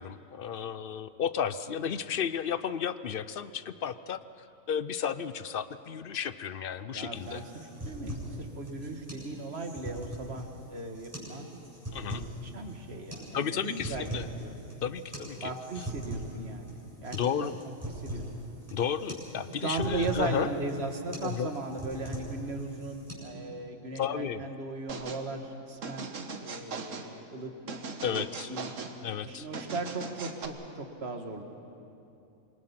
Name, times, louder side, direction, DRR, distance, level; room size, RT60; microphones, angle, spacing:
voice 1, 0.0-4.2 4.7-7.4 11.9-12.3 13.3-14.3 14.8-15.5 17.1-17.6 18.7-20.5 21.2-21.5 23.9-24.4 28.0-28.5 29.0-29.5, left 8 dB, 55° left, 14 dB, 0.7 m, -33 dB
voice 2, 6.9-11.5 12.1-14.6 15.4-17.5 17.9-18.3 19.6-26.1 26.4-27.5 28.1-28.7 29.2-31.4, right 3 dB, 50° right, 5 dB, 1.9 m, -37 dB
sound 1, 7.1-23.1, right 1 dB, 10° right, 7.6 m, -41 dB
sound 2, 24.9-25.2 25.8-27.1 27.7-28.9 29.5-30.5, right 4 dB, 70° right, 1.6 m, -39 dB
27.0 x 23.0 x 5.8 m, 2.8 s
omnidirectional pair, 1.4 m